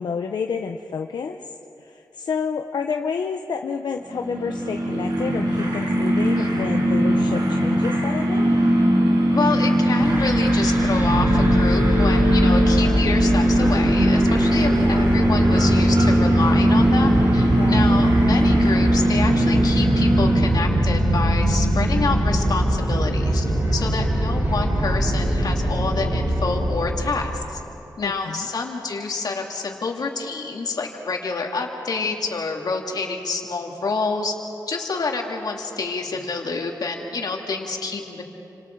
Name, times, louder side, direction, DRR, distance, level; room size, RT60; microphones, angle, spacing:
voice 1, 0.0-1.4 1.8-8.5 17.6-18.0 28.0-28.5, left 6 dB, 85° left, 4 dB, 0.8 m, -29 dB
sound 1, 4.1-20.8, equal, 80° right, 5.8 m, -20 dB
voice 2, 9.3-23.4 23.7-27.6 28.0-34.3 34.7-38.2, left 4 dB, 65° left, 1 dB, 2.7 m, -27 dB
sound 2, 10.0-27.4, right 1 dB, 30° right, 5.6 m, -22 dB
29.5 x 26.0 x 4.7 m, 2.9 s
wide cardioid pair, 120°, 7 cm